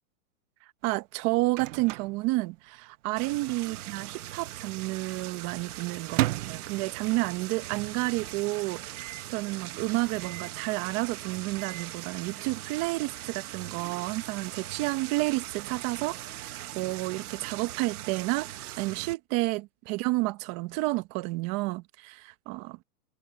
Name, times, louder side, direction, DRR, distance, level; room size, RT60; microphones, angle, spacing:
voice 1, 0.8-22.8, right 21 dB, 35° right, 1.3 m, -31 dB
Microwave oven, 0.9-3.1 3.4-3.5 3.7-4.3 4.8-7.5 7.9-8.0 8.2-8.3 8.9-9.3 10.2-10.7 11.3-12.0, right 16 dB, 55° right, 0.8 m, -35 dB
sound 1, 3.2-19.1, right 13 dB, 75° right, 2.1 m, -41 dB
supercardioid pair, 150°, 46 cm